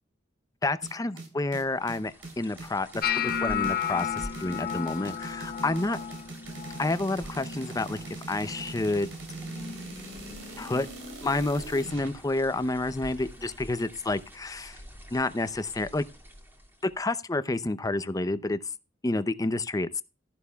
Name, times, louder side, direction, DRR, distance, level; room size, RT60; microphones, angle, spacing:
voice 1, 0.6-6.0 6.8-8.0 8.3-9.1 10.6-10.9 11.2-14.8 15.1-16.0 17.0-18.6 19.0-20.0, left 2 dB, 20° left, 0.6 m, -29 dB
sound 1, 0.8-12.1, right 2 dB, 75° right, 3.3 m, -41 dB
sound 2, 1.7-17.0, equal, 10° right, 2.1 m, -48 dB
sound 3, 3.0-9.1 9.4-9.9 10.2-10.8 11.4-11.6 13.4-13.5, left 8 dB, 50° left, 0.9 m, -34 dB
13.0 x 11.0 x 2.3 m
head